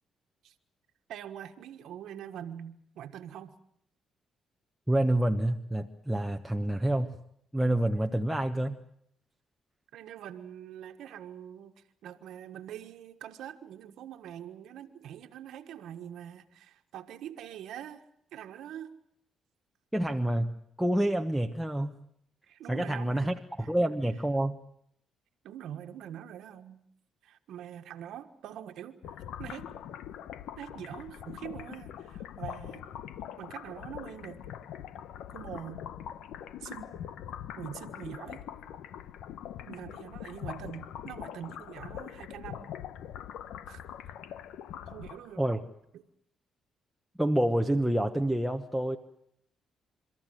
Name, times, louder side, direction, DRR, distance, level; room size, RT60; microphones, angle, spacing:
voice 1, 1.1-3.5 9.9-11.7 12.0-18.0 18.3-19.0 22.5-23.7 25.4-26.8 27.2-29.0 29.4-29.7 30.6-32.9 33.4-34.4 35.3-35.8 36.6-36.9 37.6-38.4 39.7-42.7 43.7-44.4 44.9-45.4 45.9-46.0, right 10 dB, 80° right, 6 dB, 1.4 m, -44 dB
voice 2, 4.9-7.2 7.5-8.8 19.9-21.9 22.7-23.4 23.7-24.6 45.4-45.6 47.2-49.0, right 1 dB, ahead, 3 dB, 1.1 m, -28 dB
sound 1, 29.0-45.5, left 10 dB, 85° left, 1.0 m, -43 dB
29.5 x 14.0 x 9.2 m, 0.71 s
cardioid pair, 90°, 0 cm